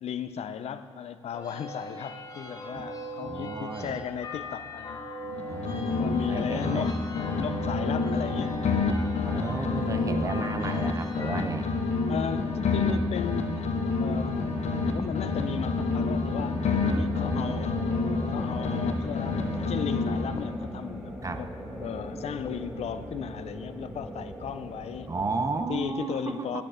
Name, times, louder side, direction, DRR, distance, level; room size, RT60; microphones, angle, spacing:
voice 1, 0.0-5.0 5.8-7.1 7.4-8.6 9.2-9.7 12.1-14.4 14.9-21.5 21.8-25.1 25.5-26.6, left 8 dB, 70° left, 11 dB, 0.5 m, -36 dB
sound 1, 1.3-11.5, left 1 dB, 35° left, 1.1 m, -39 dB
voice 2, 3.2-4.0 5.5-6.9 9.2-11.7 16.8-17.7 21.2-21.4 25.1-26.6, right 3 dB, 30° right, 8 dB, 0.6 m, -33 dB
sound 2, 5.2-6.9 7.2-10.9 11.2-14.9 15.2-18.9 19.2-20.6, left 4 dB, 90° left, 1.0 m, -28 dB
sound 3, 14.0-25.4, equal, 5° right, 1.7 m, -39 dB
9.4 x 8.8 x 4.9 m, 2.3 s
cardioid pair, 115°, 11 cm